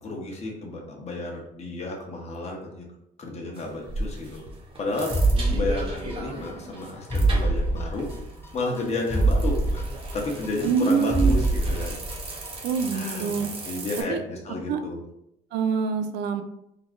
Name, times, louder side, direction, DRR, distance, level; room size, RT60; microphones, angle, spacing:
voice 1, 0.0-2.9 3.2-4.4 4.8-5.1 5.5-8.1 8.5-9.9 10.1-12.0 12.9-13.4 13.6-15.0, left 2 dB, 40° left, -1 dB, 1.2 m, -32 dB
sound 1, 3.5-14.0, right 2 dB, 35° right, 1.0 m, -38 dB
sound 2, 5.1-6.5 6.8-6.9 7.1-8.5 8.8-8.9 9.1-10.8 11.1-12.5 12.8-12.9, right 2 dB, 15° left, 0.4 m, -24 dB
voice 2, 10.6-11.4 12.6-13.5 14.1-14.2 14.7-14.8 15.5-16.4, right 6 dB, 90° right, 8 dB, 0.5 m, -25 dB
3.9 x 2.4 x 3.7 m, 0.79 s
cardioid pair, 110°, 17 cm